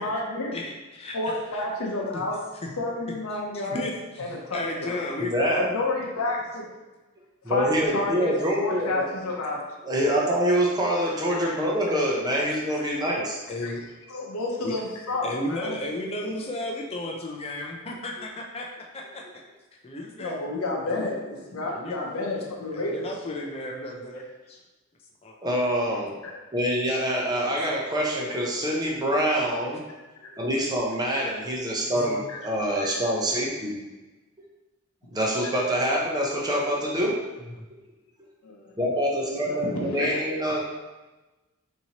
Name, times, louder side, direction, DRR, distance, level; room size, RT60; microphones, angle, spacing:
voice 1, 0.0-0.5 1.1-2.4 2.8-3.9 4.2-5.0 5.5-6.7 7.5-9.6 10.1-10.2 11.4-11.5 13.6-13.7 14.1-15.7 20.2-23.1 26.2-26.3 32.3-32.4 32.8-32.9 38.4-38.7 39.0-40.6, left 2 dB, 75° left, -2 dB, 0.7 m, -30 dB
voice 2, 0.5-1.2 1.5-1.7 2.1-2.2 2.6-2.7 3.3-3.9 4.2-5.3 13.5-13.8 14.6-14.7 15.2-19.4 19.8-20.4 20.9-21.1 21.8-22.0 22.7-24.6 25.2-25.4 26.9-27.0 31.9-32.2 37.5-37.7, left 1 dB, 25° left, 0 dB, 0.4 m, -34 dB
voice 3, 5.2-5.7 7.4-9.1 9.9-13.4 25.4-26.2 26.5-29.8 30.3-33.8 35.1-37.1 38.8-40.6, equal, 20° right, -3 dB, 0.6 m, -25 dB
4.3 x 2.7 x 2.8 m, 1.1 s
head